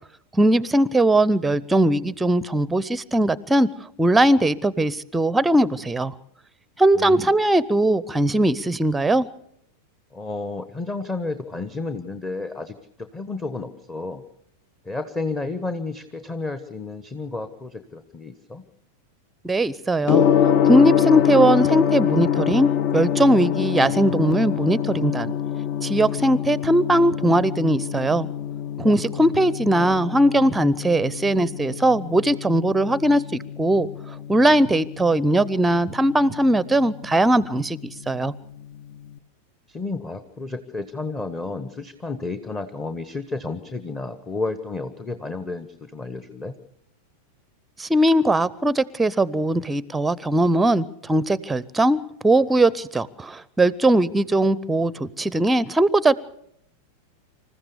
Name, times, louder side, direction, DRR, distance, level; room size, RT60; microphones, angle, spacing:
voice 1, 0.3-3.7 4.0-6.1 6.8-9.3 19.4-20.3 20.6-25.3 25.8-28.3 28.8-33.9 34.3-38.3 47.8-56.1, right 1 dB, 10° right, 21 dB, 0.7 m, -20 dB
voice 2, 6.9-7.3 10.1-14.2 14.8-18.6 29.1-29.2 29.7-30.0 39.7-46.6, left 3 dB, 15° left, 10 dB, 1.1 m, -31 dB
Gong, 20.0-39.1, left 9 dB, 45° left, 0.9 m, -26 dB
26.5 x 14.5 x 6.8 m, 0.74 s
figure-of-eight pair, 90°, 0 cm